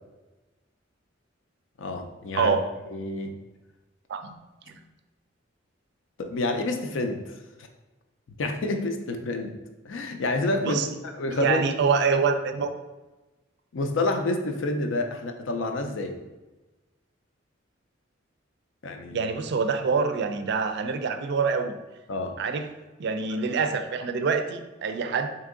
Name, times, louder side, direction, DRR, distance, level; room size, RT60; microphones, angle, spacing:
voice 1, 1.8-2.6 2.9-3.3 4.7-4.8 6.2-7.3 8.4-9.6 9.8-10.8 11.0-11.6 13.7-16.2 18.8-19.3 22.1-22.3, left 2 dB, 85° left, 5 dB, 0.5 m, -28 dB
voice 2, 2.3-2.7 4.1-4.4 10.6-10.9 11.3-12.7 19.1-21.8 22.4-22.7 23.0-25.3, right 5 dB, 60° right, 8 dB, 0.4 m, -25 dB
3.5 x 2.8 x 3.7 m, 1.1 s
head